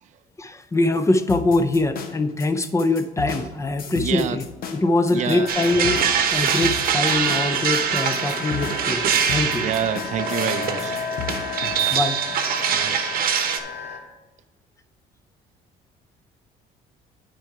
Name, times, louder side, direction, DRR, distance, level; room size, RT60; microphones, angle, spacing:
voice 1, 0.4-4.4 4.7-6.0 6.3-9.7 11.9-12.2, left 2 dB, 15° left, 0.5 m, -23 dB
sound 1, 1.3-12.0, left 6 dB, 60° left, 0.9 m, -35 dB
voice 2, 3.9-4.4 5.1-5.5 9.5-11.0 12.7-13.0, right 9 dB, 45° right, 0.4 m, -27 dB
sound 2, 5.1-14.0, left 5 dB, 75° left, 1.6 m, -33 dB
sound 3, 5.5-13.6, right 8 dB, 60° right, 0.8 m, -24 dB
9.0 x 4.6 x 4.7 m
cardioid pair, 110°, 17 cm